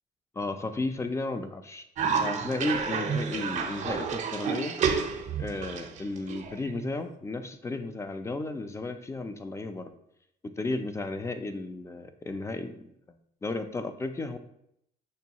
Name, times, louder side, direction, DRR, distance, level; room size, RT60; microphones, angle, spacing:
voice 1, 0.4-4.8 5.4-9.9 10.4-14.4, left 2 dB, 15° left, 9 dB, 0.4 m, -34 dB
Cough, 2.0-7.0, right 6 dB, 45° right, 0.5 m, -30 dB
6.3 x 2.3 x 2.8 m, 0.74 s
cardioid pair, 110°, 17 cm